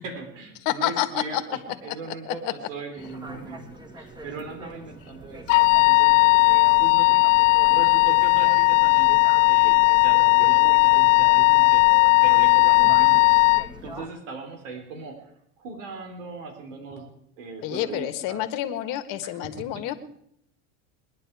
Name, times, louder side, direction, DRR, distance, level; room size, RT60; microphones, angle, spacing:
voice 1, 0.0-3.6 3.9-6.3 6.8-7.2 7.7-11.9 12.2-15.3 15.6-17.1 17.4-18.4 19.2-19.9, right 4 dB, 80° right, 5 dB, 4.1 m, -39 dB
voice 2, 0.6-1.6 1.9-2.0 2.3-2.5 17.6-19.9, left 13 dB, 60° left, 9 dB, 1.5 m, -28 dB
sound 1, 3.0-14.1, right 1 dB, 10° right, 2.3 m, -42 dB
Wind instrument woodwind instrument, 5.5-13.7, left 27 dB, 80° left, 0.5 m, -17 dB
21.0 x 10.5 x 4.8 m, 0.73 s
supercardioid pair, 105°, 38 cm